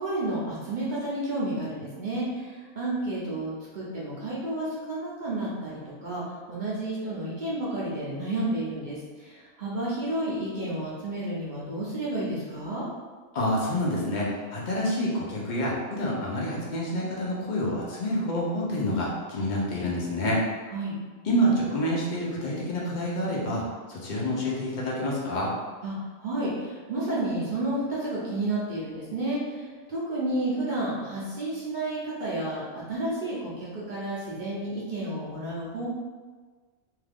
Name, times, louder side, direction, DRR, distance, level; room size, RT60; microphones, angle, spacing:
voice 1, 0.0-12.9 20.7-21.0 25.8-35.9, right 1 dB, 50° right, -7 dB, 0.6 m, -31 dB
voice 2, 13.3-20.4 21.2-23.6 23.9-25.5, equal, 60° left, -4 dB, 0.4 m, -28 dB
2.8 x 2.4 x 3.4 m, 1.4 s
omnidirectional pair, 1.6 m